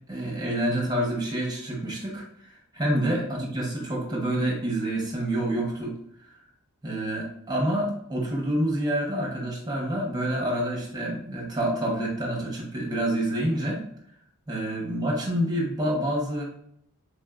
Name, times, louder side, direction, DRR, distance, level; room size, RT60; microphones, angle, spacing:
voice 1, 0.1-6.0 6.8-13.8 14.5-16.4, right 1 dB, 20° right, -2 dB, 0.9 m, -27 dB
3.7 x 2.5 x 2.3 m, 0.72 s
head